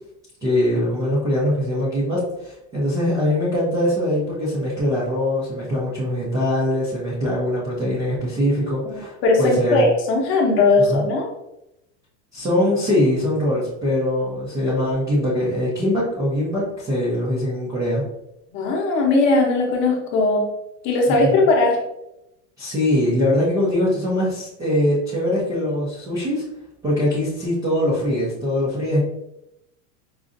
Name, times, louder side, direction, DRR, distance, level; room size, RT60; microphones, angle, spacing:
voice 1, 0.4-9.8 10.9-11.0 12.3-18.0 21.2-21.4 22.6-26.4 26.8-29.0, left 1 dB, 10° right, -9 dB, 0.3 m, -22 dB
voice 2, 9.2-11.3 18.5-20.5 20.8-21.8, left 2 dB, 35° left, 0 dB, 0.7 m, -18 dB
4.8 x 2.5 x 2.5 m, 0.85 s
supercardioid pair, 170°, 36 cm